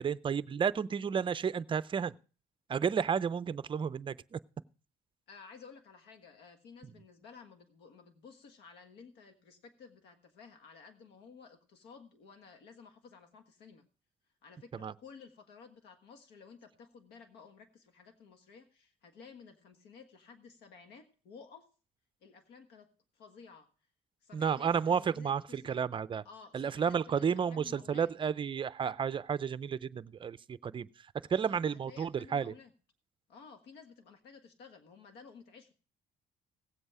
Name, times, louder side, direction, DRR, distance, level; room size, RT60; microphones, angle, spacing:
voice 1, 0.0-2.1 2.7-4.4 14.8-14.9 24.3-26.2 26.5-30.9 31.3-32.5, right 7 dB, 30° right, 0.5 m, -32 dB
voice 2, 5.3-13.9 14.4-21.7 22.2-23.7 24.2-25.7 26.2-28.1 31.3-32.7 33.3-35.7, left 5 dB, 80° left, 1.5 m, -54 dB
17.5 x 7.9 x 4.8 m
cardioid pair, 110°, 17 cm